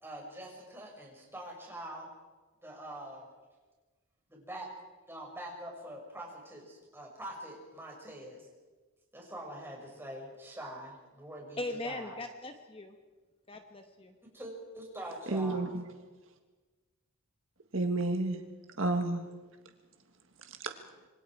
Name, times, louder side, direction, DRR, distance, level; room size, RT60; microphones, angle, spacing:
voice 1, 0.0-2.1 2.6-3.3 4.3-4.7 5.1-8.5 9.1-12.2 14.2-15.7, right 1 dB, 10° right, -1 dB, 5.9 m, -44 dB
voice 2, 11.6-12.9 13.5-14.1, left 2 dB, 25° left, 5 dB, 1.1 m, -39 dB
voice 3, 15.3-15.8 17.7-18.4 18.8-19.2 20.4-20.8, right 2 dB, 65° right, 6 dB, 1.7 m, -31 dB
26.5 x 24.5 x 4.8 m, 1.3 s
head